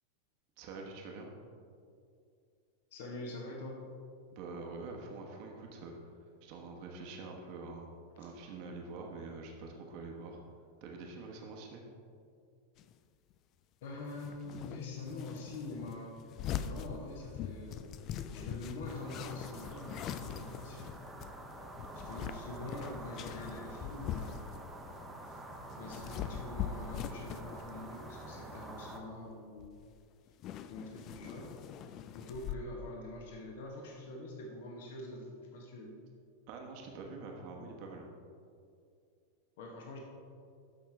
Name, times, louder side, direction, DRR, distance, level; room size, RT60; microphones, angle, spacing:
voice 1, 0.6-1.3 4.3-5.9 6.4-7.9 8.2-10.4 10.8-11.8 36.5-38.1, right 3 dB, 45° right, 1 dB, 1.2 m, -45 dB
voice 2, 2.9-3.9 13.8-16.3 16.6-17.9 18.3-21.0 21.9-24.7 25.8-29.8 30.7-31.5 32.1-36.0 39.6-40.0, left 2 dB, 55° left, 0 dB, 1.1 m, -45 dB
sound 1, 12.8-12.9 14.1-24.8 25.1-27.8 28.1-28.4 29.3-29.4 29.6-30.0 30.3-32.5, left 9 dB, 35° left, 0.4 m, -43 dB
sound 2, 18.8-29.0, right 1 dB, 10° right, 0.9 m, -47 dB
13.0 x 5.7 x 3.4 m, 2.4 s
figure-of-eight pair, 90°, 0 cm